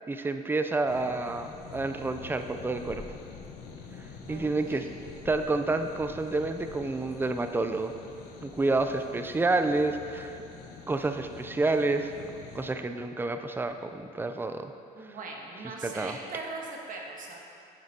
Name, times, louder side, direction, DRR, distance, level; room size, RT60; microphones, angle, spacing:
voice 1, 0.1-3.0 4.3-4.8 5.2-7.9 8.4-10.4 10.9-12.3 12.5-14.7 15.8-16.2, right 3 dB, 10° right, 7 dB, 0.4 m, -29 dB
sound 1, 0.9-12.7, left 5 dB, 75° left, 0.9 m, -46 dB
voice 2, 4.3-5.0 14.9-17.4, right 3 dB, 50° right, -1 dB, 1.4 m, -40 dB
10.0 x 7.7 x 2.8 m, 2.7 s
cardioid pair, 110°, 17 cm